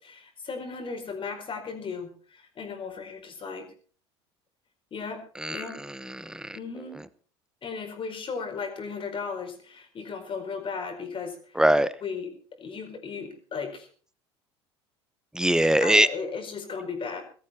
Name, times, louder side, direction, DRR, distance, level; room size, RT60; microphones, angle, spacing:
voice 1, 0.0-3.7 4.9-5.2 5.5-5.8 6.5-7.0 7.6-11.6 12.0-12.3 12.6-13.9 15.8-17.2, left 5 dB, 40° left, 5 dB, 4.7 m, -36 dB
voice 2, 5.4-6.6 11.5-11.9 15.3-16.1, right 1 dB, 5° right, 16 dB, 1.0 m, -23 dB
17.5 x 13.5 x 4.3 m, 0.42 s
hypercardioid pair, 75°, 14 cm